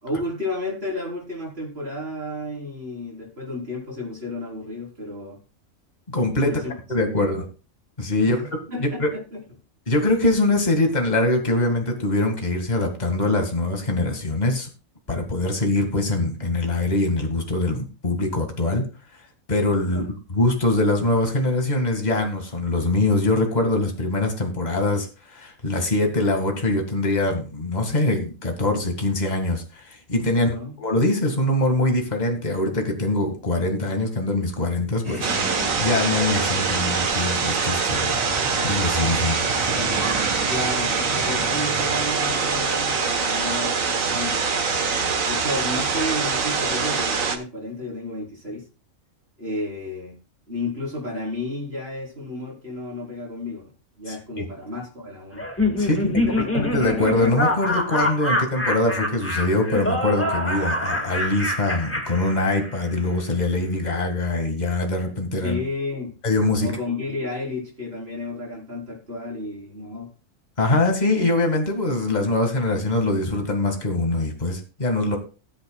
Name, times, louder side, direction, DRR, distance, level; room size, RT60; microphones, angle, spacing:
voice 1, 0.0-5.4 6.4-6.7 7.2-7.4 8.2-9.4 19.9-20.0 30.3-30.8 40.5-48.7 49.4-50.2 50.5-53.7 54.0-55.4 55.8-56.4 65.4-66.2 66.6-70.1, left 2 dB, 45° right, -2 dB, 4.2 m, -32 dB
voice 2, 6.1-6.5 6.9-7.4 8.0-9.1 9.9-14.7 15.1-18.9 19.5-35.3 35.8-38.2 38.6-39.4 54.1-54.4 55.8-56.0 56.5-65.6 66.2-66.7 70.6-75.2, left 2 dB, 30° left, 3 dB, 2.1 m, -23 dB
sound 1, 35.0-42.6, right 1 dB, 20° right, 3.8 m, -35 dB
sound 2, 35.2-47.4, right 5 dB, 75° right, 1.7 m, -24 dB
Laughter, 55.4-62.9, left 1 dB, 10° left, 1.7 m, -25 dB
19.5 x 8.1 x 2.3 m, 0.33 s
omnidirectional pair, 1.4 m